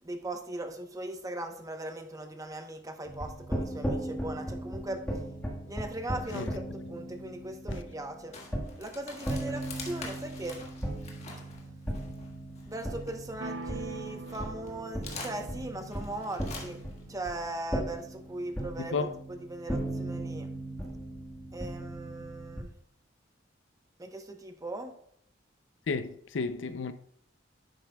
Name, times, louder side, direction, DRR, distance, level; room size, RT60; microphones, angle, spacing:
voice 1, 0.0-5.0 5.7-8.4 8.8-10.6 12.7-16.8 17.1-20.5 21.5-22.7 24.0-24.9, right 1 dB, 20° right, 0.9 m, -39 dB
sound 1, 3.1-22.6, right 1 dB, 10° left, 1.5 m, -37 dB
sound 2, 8.3-13.6 14.0-17.0, left 3 dB, 35° left, 1.6 m, -46 dB
sound 3, 13.4-17.2, right 3 dB, 70° right, 0.6 m, -44 dB
voice 2, 25.9-26.9, left 4 dB, 75° left, 0.5 m, -32 dB
10.5 x 8.0 x 2.3 m
head